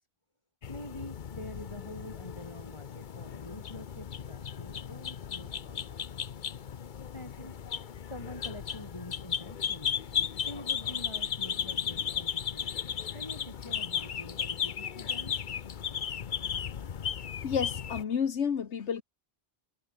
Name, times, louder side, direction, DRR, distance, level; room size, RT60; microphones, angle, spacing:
sound 1, 0.6-18.0, left 8 dB, 50° left, 0.9 m, -35 dB
voice 1, 0.7-5.8 7.0-12.7 13.1-15.3, left 1 dB, 25° left, 4.9 m, -46 dB
voice 2, 17.4-19.0, left 7 dB, 90° left, 1.5 m, -30 dB
omnidirectional pair, 1.1 m